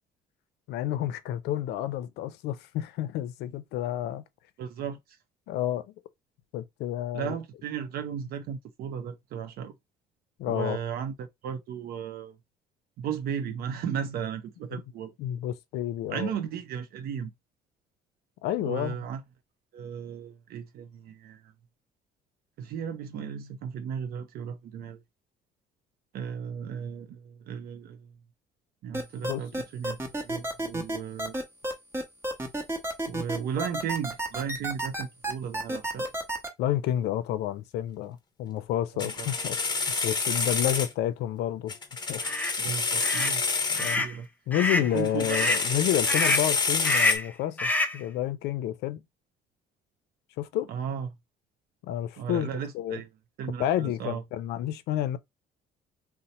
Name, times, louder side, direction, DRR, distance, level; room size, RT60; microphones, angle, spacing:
voice 1, 0.7-4.3 5.5-5.9 6.5-7.3 10.4-10.8 14.7-14.8 15.2-16.3 18.4-19.0 29.3-29.4 36.6-41.7 42.1-42.2 43.7-44.0 44.5-49.0 50.4-50.7 51.8-53.0 53.6-55.2, left 12 dB, 80° left, 0.5 m, -30 dB
voice 2, 4.6-5.0 7.1-9.7 10.5-12.4 13.0-15.1 16.1-17.3 18.6-19.2 19.7-21.5 22.6-25.0 26.1-28.1 28.8-31.3 33.1-36.1 38.9-39.3 42.6-43.4 43.8-44.3 44.8-45.4 50.7-51.1 52.2-53.1 53.4-54.2, right 8 dB, 65° right, 0.5 m, -35 dB
sound 1, 28.9-36.5, right 1 dB, 15° right, 0.9 m, -30 dB
sound 2, 39.0-40.9 41.7-44.0 45.0-47.2, left 4 dB, 25° left, 1.0 m, -28 dB
sound 3, 42.2-42.5 43.0-43.3 43.8-44.1 44.5-44.9 45.3-45.6 46.1-46.5 46.8-47.3 47.6-48.0, left 2 dB, 10° left, 0.5 m, -26 dB
2.8 x 2.1 x 4.0 m
cardioid pair, 110°, 17 cm